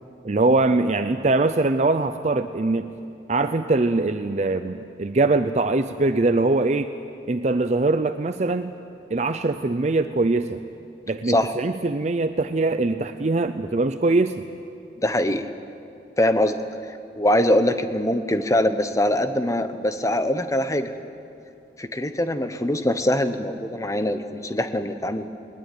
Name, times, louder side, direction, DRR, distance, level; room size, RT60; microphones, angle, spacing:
voice 1, 0.2-2.9 3.3-6.9 7.3-8.7 9.1-10.6 11.1-14.3, right 2 dB, 40° right, 9 dB, 0.6 m, -22 dB
voice 2, 15.0-15.4 16.2-16.6 17.1-20.9 21.8-25.3, left 1 dB, 20° left, 9 dB, 1.0 m, -23 dB
20.5 x 20.5 x 9.3 m, 2.6 s
head